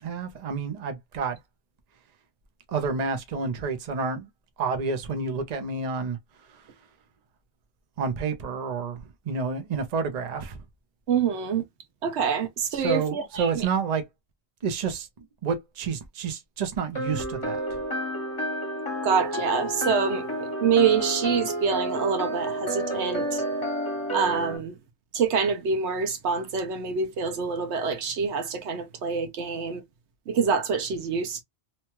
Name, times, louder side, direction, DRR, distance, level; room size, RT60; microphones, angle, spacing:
voice 1, 0.0-1.4 2.7-4.3 4.6-6.2 6.5-6.6 8.0-10.6 12.7-14.1 14.6-17.8, right 5 dB, 45° right, 0.7 m, -29 dB
voice 2, 11.1-11.6 12.0-13.7 19.0-23.4 24.1-24.8 25.1-29.8 30.3-31.4, right 6 dB, 80° right, 1.0 m, -26 dB
sound 1, 16.9-24.6, right 1 dB, 25° left, 1.3 m, -30 dB
2.9 x 2.2 x 2.9 m
omnidirectional pair, 1.1 m